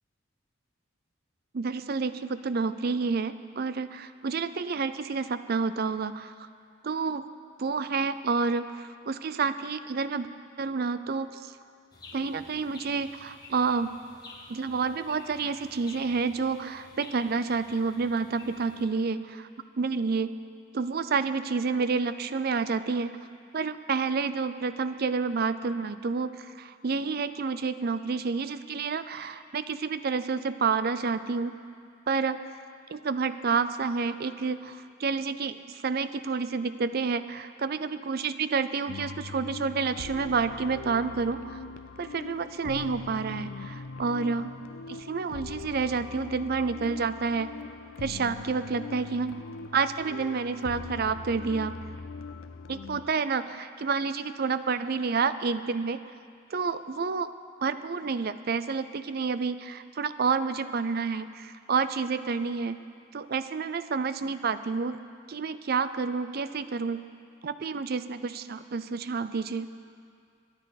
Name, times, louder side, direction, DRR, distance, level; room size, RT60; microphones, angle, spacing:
voice 1, 1.5-6.3 6.8-7.3 7.6-10.3 10.6-11.5 12.1-13.9 14.5-19.5 19.8-20.3 20.7-23.2 23.5-31.5 32.1-32.4 32.9-41.6 42.0-44.5 44.9-47.5 48.0-49.4 49.7-51.8 52.7-56.0 56.5-57.3 57.6-62.8 63.1-65.0 65.3-67.0 67.4-69.7, right 5 dB, 50° right, 13 dB, 0.5 m, -29 dB
sound 1, 11.9-18.9, left 2 dB, 20° left, 1.3 m, -51 dB
sound 2, 38.9-53.1, left 4 dB, 75° left, 0.5 m, -41 dB
23.0 x 10.5 x 4.1 m, 2.3 s
head